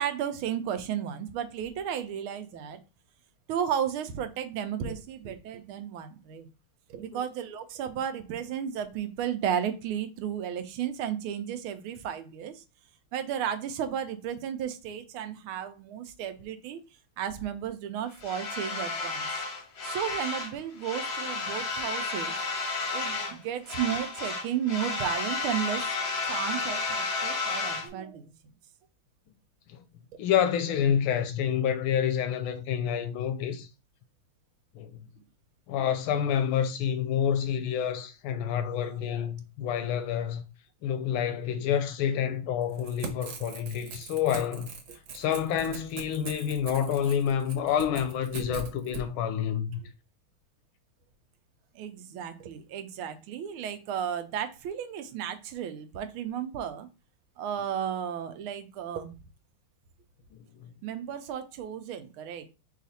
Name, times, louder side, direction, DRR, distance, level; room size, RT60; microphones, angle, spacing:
voice 1, 0.0-2.8 3.5-6.5 6.9-12.6 13.1-16.8 17.2-19.4 19.8-22.3 22.9-25.8 26.3-28.3 43.4-43.5 44.9-45.0 48.4-48.5 51.7-56.9 57.4-59.2 60.8-62.5, right 9 dB, 90° right, 1.5 m, -33 dB
sound 1, 18.2-20.5 20.8-23.4 23.7-27.9, left 3 dB, 50° left, 0.7 m, -32 dB
voice 2, 30.2-33.7 34.7-35.0 35.7-40.4 40.8-44.7 45.1-49.8 60.3-60.7, left 9 dB, 80° left, 1.4 m, -28 dB
Crackle / Tearing, 42.7-49.0, right 4 dB, 75° right, 1.7 m, -41 dB
4.9 x 2.5 x 4.1 m
omnidirectional pair, 2.3 m